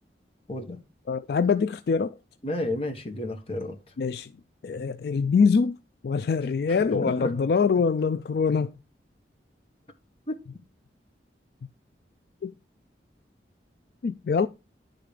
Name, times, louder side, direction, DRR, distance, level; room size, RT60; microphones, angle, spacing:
voice 1, 1.1-2.1 4.0-4.3 4.6-5.8 6.0-8.7 12.4-12.5 14.0-14.5, left 5 dB, 60° left, 0.3 m, -24 dB
voice 2, 2.4-3.8 7.0-7.3 10.3-10.4, left 1 dB, 35° left, 1.3 m, -31 dB
10.5 x 3.9 x 4.9 m
head